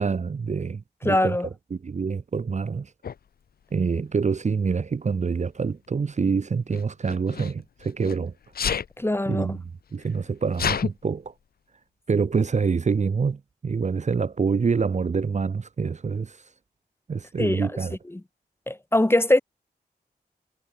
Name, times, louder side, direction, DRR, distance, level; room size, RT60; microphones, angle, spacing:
voice 1, 0.0-1.4 1.7-2.9 3.7-8.3 9.3-9.6 9.9-11.3 12.1-16.4 17.1-17.9, right 5 dB, 45° right, 0.7 m, -26 dB
voice 2, 1.0-1.5 9.0-9.6 17.4-17.8 18.1-18.2 18.7-19.4, left 1 dB, 15° left, 1.2 m, -22 dB
Sneeze, 3.0-3.2 4.3-4.6 6.7-8.2 8.5-8.9 9.7-9.8 10.0-10.9, left 7 dB, 60° left, 0.6 m, -29 dB
cardioid pair, 75°, 17 cm